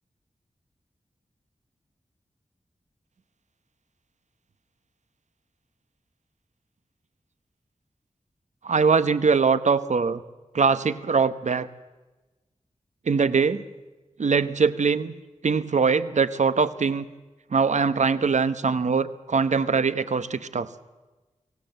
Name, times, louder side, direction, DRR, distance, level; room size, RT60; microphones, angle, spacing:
voice 1, 8.6-10.2 10.5-11.7 13.1-13.6 14.2-15.1 15.4-17.1 17.5-20.7, right 5 dB, 70° right, 13 dB, 1.0 m, -22 dB
23.5 x 17.0 x 8.0 m, 1.2 s
wide cardioid pair, 90°, 13 cm